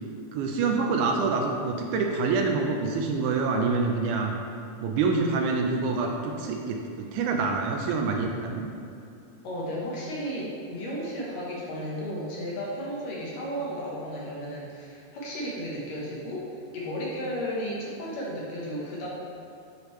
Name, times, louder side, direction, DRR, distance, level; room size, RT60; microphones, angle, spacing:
voice 1, 0.3-4.3 4.8-8.7, right 4 dB, 80° right, 2 dB, 1.9 m, -26 dB
voice 2, 9.4-16.5 16.7-19.1, equal, 65° left, -5 dB, 2.0 m, -34 dB
8.1 x 4.9 x 3.1 m, 2.5 s
omnidirectional pair, 3.6 m